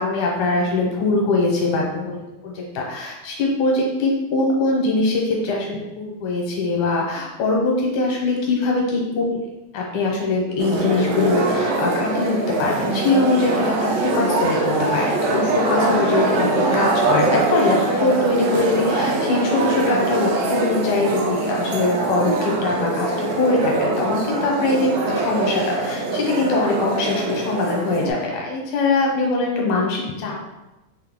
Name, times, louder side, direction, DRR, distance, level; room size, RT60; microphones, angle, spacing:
voice 1, 0.0-9.4 9.7-30.4, left 2 dB, 85° left, -1 dB, 2.3 m, -22 dB
sound 1, 10.6-28.1, right 2 dB, 75° right, 1.7 m, -23 dB
5.4 x 2.1 x 3.5 m, 1.0 s
omnidirectional pair, 3.4 m